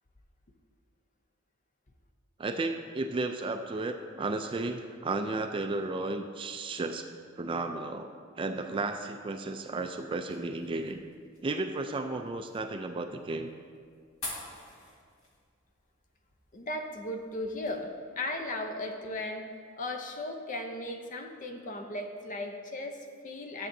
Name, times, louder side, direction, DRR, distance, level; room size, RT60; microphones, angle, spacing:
voice 1, 2.4-7.1 7.4-8.1 8.4-11.0 11.4-13.5, right 3 dB, 25° right, 6 dB, 0.3 m, -33 dB
sound 1, 9.3-17.8, left 2 dB, 75° left, 2.0 m, -49 dB
voice 2, 16.5-19.5 19.8-23.7, left 1 dB, 40° left, 4 dB, 0.7 m, -36 dB
12.5 x 7.5 x 2.7 m, 2.1 s
head